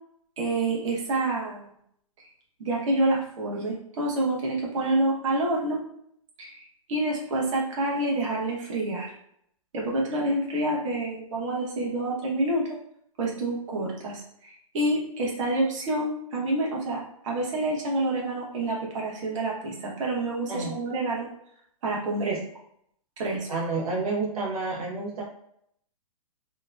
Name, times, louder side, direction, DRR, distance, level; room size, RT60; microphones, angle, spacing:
voice 1, 0.4-1.7 2.6-5.8 6.4-9.1 9.7-12.6 13.2-21.3 21.8-22.4 23.2-23.5, right 2 dB, 55° right, -3 dB, 1.0 m, -28 dB
voice 2, 23.5-25.2, right 3 dB, 80° right, -4 dB, 0.8 m, -29 dB
2.9 x 2.1 x 2.3 m, 0.72 s
hypercardioid pair, 135°, 19 cm